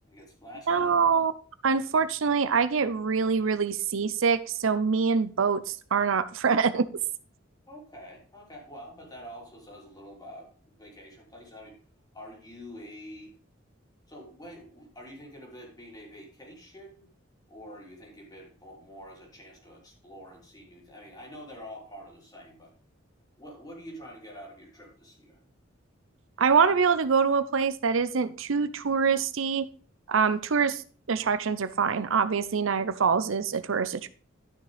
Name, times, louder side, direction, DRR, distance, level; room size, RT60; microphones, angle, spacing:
voice 1, 0.1-0.9 7.7-10.5 10.8-11.8 12.1-13.3 14.1-17.1 17.5-22.7 23.4-25.4, equal, 20° left, -2 dB, 3.8 m, -46 dB
voice 2, 0.7-1.3 1.6-6.9 26.4-29.7 30.1-30.8 31.1-34.1, right 5 dB, 80° right, 13 dB, 0.6 m, -25 dB
12.0 x 6.3 x 3.4 m, 0.40 s
head